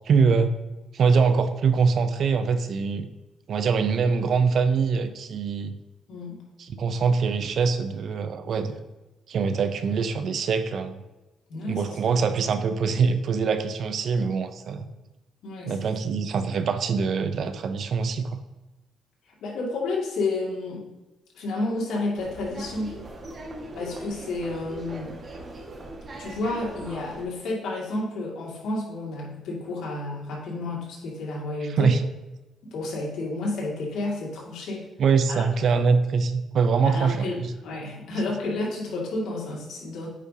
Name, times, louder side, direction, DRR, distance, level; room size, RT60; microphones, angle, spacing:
voice 1, 0.1-0.5 0.9-3.1 3.5-5.7 6.8-8.8 9.3-11.0 11.7-14.9 15.7-18.4 31.8-32.0 35.0-37.5, right 5 dB, 60° right, 10 dB, 0.6 m, -23 dB
voice 2, 6.1-6.4 11.5-12.2 15.4-15.9 19.2-20.9 21.3-22.9 23.7-25.2 26.2-31.9 32.6-34.8 35.3-35.4 36.8-40.1, left 2 dB, 75° left, -3 dB, 2.2 m, -31 dB
sound 1, 22.2-27.2, right 1 dB, 40° right, 1.6 m, -40 dB
8.4 x 5.2 x 2.8 m, 1.1 s
cardioid pair, 90°, 0 cm